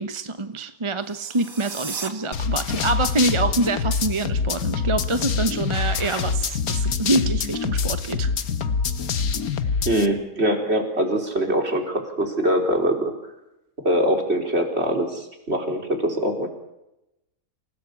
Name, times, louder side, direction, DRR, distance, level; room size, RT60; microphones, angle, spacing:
voice 1, 0.0-8.3, right 2 dB, 25° right, 10 dB, 0.9 m, -25 dB
sound 1, 1.0-2.1, right 4 dB, 65° right, 2.9 m, -35 dB
sound 2, 2.3-10.1, left 5 dB, 70° left, 1.7 m, -25 dB
voice 2, 9.9-13.1 13.8-16.5, equal, 45° right, 3 dB, 4.7 m, -23 dB
28.0 x 18.5 x 8.5 m, 0.89 s
omnidirectional pair, 1.6 m